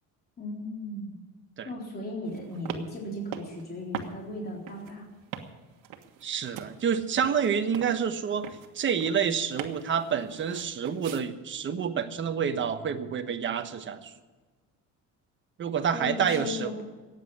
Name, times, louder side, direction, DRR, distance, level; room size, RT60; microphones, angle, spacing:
voice 1, 0.4-1.2 1.6-5.1 15.9-16.8, left 1 dB, 30° left, -2 dB, 3.8 m, -36 dB
sound 1, 2.3-11.2, right 9 dB, 85° right, 1.6 m, -42 dB
voice 2, 6.2-8.5 8.7-14.1 15.6-16.7, right 7 dB, 40° right, 7 dB, 1.2 m, -28 dB
15.0 x 9.6 x 8.4 m, 1.3 s
cardioid pair, 140°, 31 cm